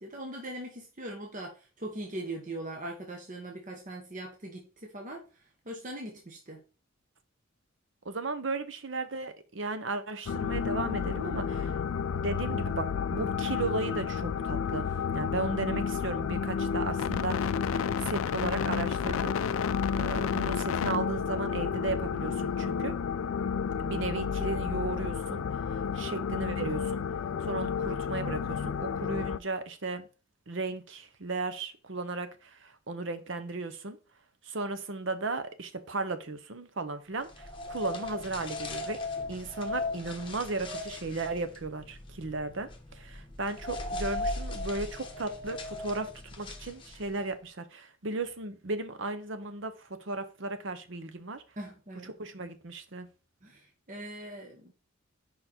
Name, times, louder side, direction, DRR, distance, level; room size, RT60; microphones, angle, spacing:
voice 1, 0.0-5.2 5.6-6.6 51.6-52.1 53.4-54.7, right 1 dB, 40° right, 1.1 m, -41 dB
voice 2, 8.0-11.8 12.2-14.9 15.1-19.3 19.9-22.9 23.8-25.4 25.9-27.0 27.4-30.1 30.5-34.0 34.4-39.0 39.3-46.1 46.4-51.4 52.2-53.1, right 3 dB, 60° right, 0.8 m, -35 dB
sound 1, 10.3-29.4, left 6 dB, 80° left, 0.4 m, -31 dB
sound 2, 37.3-47.2, left 2 dB, 25° left, 1.0 m, -38 dB
5.2 x 4.6 x 4.3 m
head